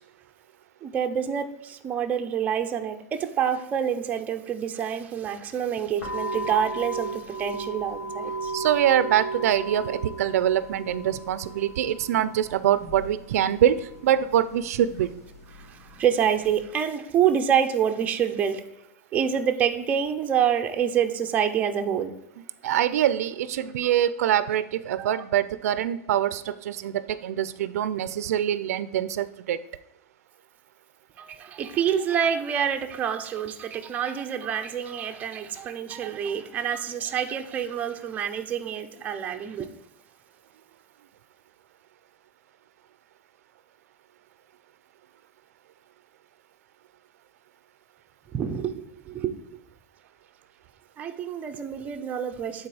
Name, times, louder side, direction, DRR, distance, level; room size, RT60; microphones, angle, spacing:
voice 1, 0.8-8.5 15.6-18.6 19.1-22.1 22.6-22.8 25.0-25.2 31.2-39.7 48.3-49.3 51.0-52.7, right 8 dB, 20° right, 5 dB, 0.5 m, -27 dB
sound 1, 6.0-16.6, right 2 dB, 85° left, 2.2 m, -36 dB
voice 2, 8.5-15.1 22.6-29.6, right 10 dB, 80° right, 15 dB, 0.4 m, -24 dB
8.5 x 4.0 x 4.8 m, 0.87 s
supercardioid pair, 160°, 8 cm